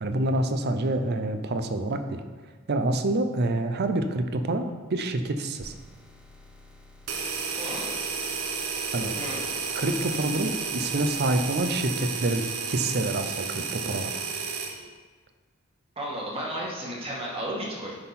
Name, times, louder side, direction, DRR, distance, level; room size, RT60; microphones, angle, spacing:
voice 1, 0.0-2.2 2.7-5.7 8.9-9.1 9.8-14.2, right 2 dB, 50° right, 8 dB, 0.6 m, -27 dB
sound 1, 5.6-13.1, left 1 dB, 5° right, 0.8 m, -53 dB
sound 2, 7.1-14.8, right 5 dB, 80° right, 1.1 m, -32 dB
voice 2, 7.6-7.9 9.2-9.5 16.0-18.0, right 1 dB, 25° right, -4 dB, 1.9 m, -33 dB
9.8 x 5.7 x 4.2 m, 1.4 s
head